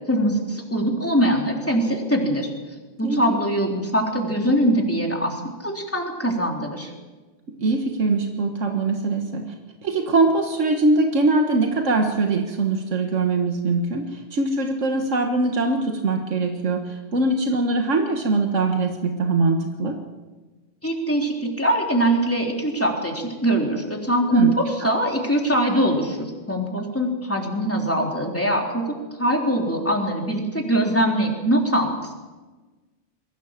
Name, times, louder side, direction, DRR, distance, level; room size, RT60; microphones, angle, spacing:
voice 1, 0.1-2.5 3.0-6.9 20.8-32.2, right 1 dB, 10° left, 0 dB, 3.6 m, -22 dB
voice 2, 3.0-3.4 7.6-9.5 9.8-20.0 24.3-24.5, right 3 dB, 90° right, 4 dB, 1.8 m, -22 dB
22.5 x 16.5 x 7.5 m, 1.3 s
omnidirectional pair, 1.2 m